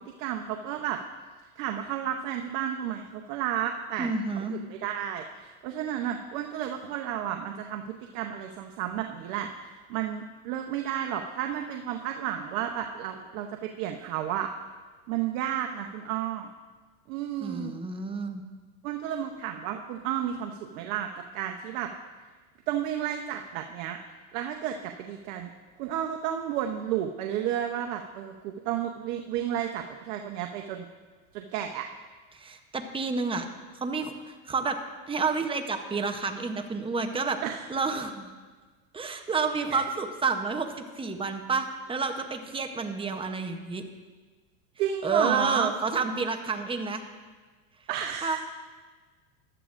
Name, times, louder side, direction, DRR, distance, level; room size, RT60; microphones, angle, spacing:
voice 1, 0.2-1.0 1.6-14.5 15.1-16.5 17.1-17.7 18.8-21.9 22.7-24.0 24.3-25.5 25.8-30.9 31.3-31.9 37.4-37.6 39.7-39.8 44.8-45.7 47.9-48.4, right 10 dB, 65° right, 4 dB, 0.9 m, -32 dB
voice 2, 4.0-4.6 17.4-18.4 32.3-33.4 33.7-34.8 35.1-37.4 37.7-38.3 38.9-43.8 45.0-47.0 48.2-48.4, right 4 dB, 10° right, 5 dB, 0.8 m, -30 dB
14.5 x 11.0 x 2.5 m, 1.4 s
supercardioid pair, 125°, 44 cm